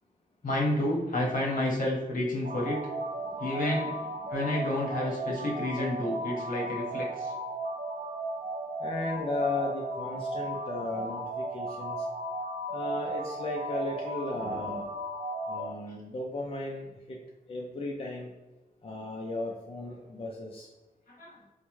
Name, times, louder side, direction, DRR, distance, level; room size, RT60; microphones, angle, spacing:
voice 1, 0.4-2.8 3.4-3.9 4.3-7.3 21.1-21.4, left 1 dB, 65° left, -3 dB, 1.0 m, -30 dB
sound 1, 2.4-15.7, right 1 dB, 85° right, 0.6 m, -35 dB
voice 2, 3.2-3.5 4.2-4.3 8.8-12.1 12.7-14.9 15.5-17.2 17.5-18.3 18.8-20.7, left 2 dB, 40° left, -1 dB, 0.4 m, -35 dB
4.5 x 2.1 x 3.0 m, 1.1 s
wide cardioid pair, 140°, 15 cm